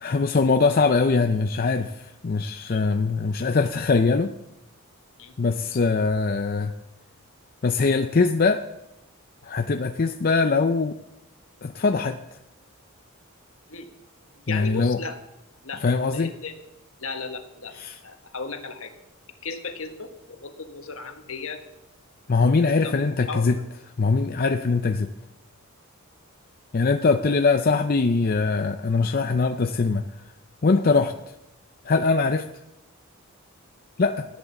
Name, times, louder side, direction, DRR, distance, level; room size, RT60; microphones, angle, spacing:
voice 1, 0.0-4.3 5.4-6.7 7.6-8.6 9.4-11.0 11.6-12.4 14.5-15.0 15.8-16.3 17.8-18.0 22.3-23.6 24.0-25.1 26.7-30.0 30.6-31.1 31.8-32.4 34.0-34.3, left 4 dB, 40° left, 7 dB, 0.5 m, -22 dB
voice 2, 14.3-15.2 15.6-15.8 16.1-16.5 17.0-17.7 18.0-18.9 19.4-21.6 22.8-23.6 27.3-27.4 34.0-34.1, left 4 dB, 65° left, 6 dB, 1.5 m, -36 dB
15.0 x 10.5 x 7.1 m, 0.91 s
head